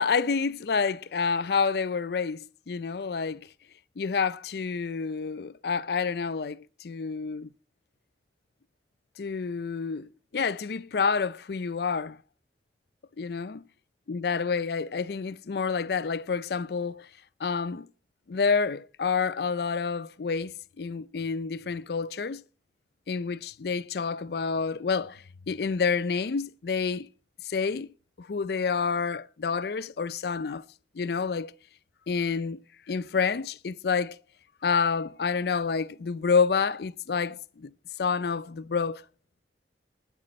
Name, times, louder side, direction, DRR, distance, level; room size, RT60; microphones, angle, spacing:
voice 1, 0.0-3.4 4.0-7.5 9.2-12.2 13.2-13.6 14.1-17.1 17.4-17.9 18.3-22.4 23.1-27.1 27.4-27.9 28.2-30.6 31.0-31.5 32.1-32.6 32.9-34.2 34.6-37.7 38.0-39.0, left 5 dB, 60° left, 0.5 m, -28 dB
12.0 x 9.9 x 5.2 m
head